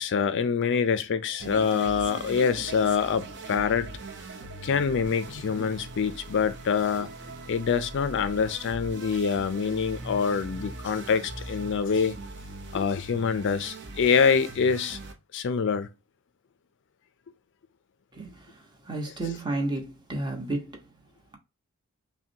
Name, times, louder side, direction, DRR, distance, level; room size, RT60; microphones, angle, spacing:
voice 1, 0.0-3.9 4.6-7.1 7.5-12.1 12.7-15.0 15.3-15.9, left 6 dB, 55° left, 0.4 m, -25 dB
sound 1, 1.4-15.1, right 2 dB, 50° right, 0.8 m, -41 dB
voice 2, 18.1-20.9, right 2 dB, 20° right, 1.0 m, -32 dB
5.8 x 2.2 x 2.7 m
head